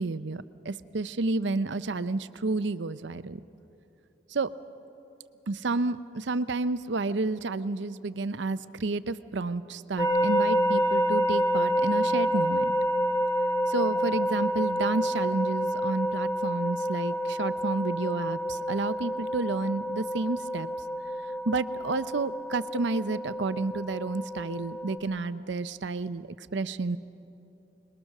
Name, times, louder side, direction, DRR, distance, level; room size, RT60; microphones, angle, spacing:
voice 1, 0.0-3.4 4.3-4.5 5.5-12.7 13.7-20.7 21.5-27.0, right 3 dB, 75° right, 14 dB, 0.6 m, -30 dB
sound 1, 10.0-25.0, equal, 20° left, 2.1 m, -28 dB
27.0 x 21.0 x 6.5 m, 2.8 s
head